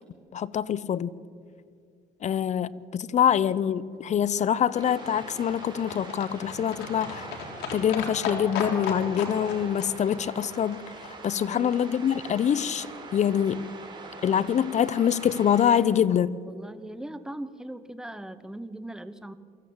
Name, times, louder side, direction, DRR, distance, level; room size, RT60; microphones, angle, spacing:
voice 1, 0.3-1.1 2.2-7.3 7.7-10.8 11.1-13.7 14.2-16.4, left 9 dB, 45° left, 19 dB, 0.7 m, -25 dB
Livestock farm animals working animals, 3.8-12.0 12.2-12.3 12.6-12.7 12.9-13.0 13.2-13.3 13.5-13.6 13.8-13.9 14.1-14.2 14.4-14.5, left 5 dB, 85° left, 3.9 m, -37 dB
sound 1, 4.7-15.8, right 3 dB, 25° right, 4.4 m, -43 dB
voice 2, 11.4-11.8 16.4-19.3, right 1 dB, 5° right, 12 dB, 1.0 m, -39 dB
23.5 x 14.5 x 8.7 m, 2.3 s
cardioid pair, 110°, 17 cm